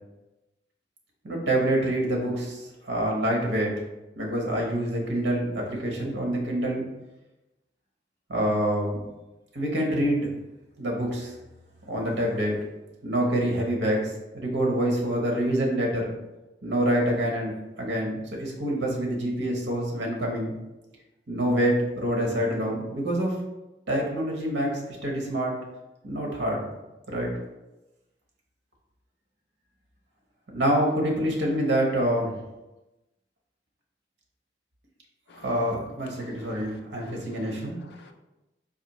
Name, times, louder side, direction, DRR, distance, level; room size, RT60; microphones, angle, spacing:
voice 1, 1.2-3.7 4.2-6.9 8.3-9.0 9.5-10.3 10.8-11.3 11.9-12.6 13.0-16.1 16.6-20.5 21.3-23.3 23.9-25.5 26.0-26.6 27.1-27.3 30.5-32.4 35.3-37.8, right 1 dB, 70° right, -1 dB, 1.0 m, -26 dB
voice 2, 36.1-36.5 37.0-37.6 37.8-38.1, left 3 dB, 65° left, 5 dB, 0.4 m, -52 dB
4.1 x 2.7 x 3.0 m, 1.0 s
head